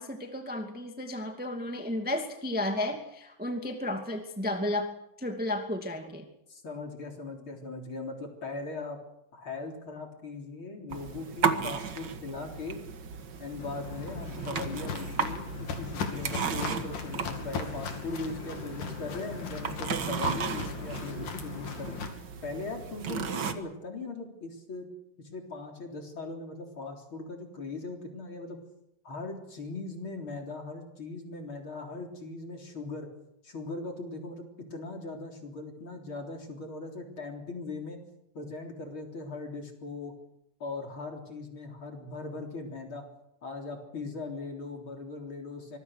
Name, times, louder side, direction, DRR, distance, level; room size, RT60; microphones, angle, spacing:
voice 1, 0.0-4.9 5.2-6.3, left 1 dB, 5° right, 4 dB, 1.9 m, -33 dB
voice 2, 6.5-9.0 9.3-12.8 13.4-22.0 22.4-24.9 25.2-28.6 29.0-33.1 33.4-38.0 38.3-40.1 40.6-43.1 43.4-45.8, left 3 dB, 40° left, 2 dB, 4.3 m, -39 dB
sound 1, 10.9-23.5, right 6 dB, 45° right, 1.7 m, -35 dB
Walk footsteps, 13.6-22.1, left 6 dB, 85° left, 4.2 m, -38 dB
25.0 x 21.0 x 6.6 m, 0.81 s
omnidirectional pair, 3.5 m